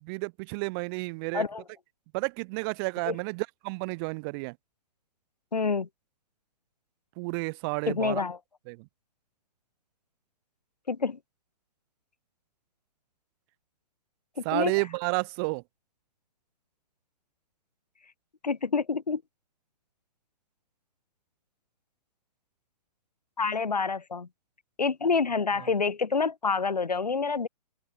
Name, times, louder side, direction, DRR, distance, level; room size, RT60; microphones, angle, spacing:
voice 1, 0.0-1.4 2.1-4.6 7.2-8.2 8.7-8.9 14.4-15.6, right 30 dB, 35° right, 2.2 m, -31 dB
voice 2, 5.5-5.9 7.9-8.4 10.9-11.2 14.4-14.7 18.4-19.2 23.4-24.3 24.8-27.5, left 5 dB, 85° left, 1.8 m, -27 dB
open air
figure-of-eight pair, 125°, 20 cm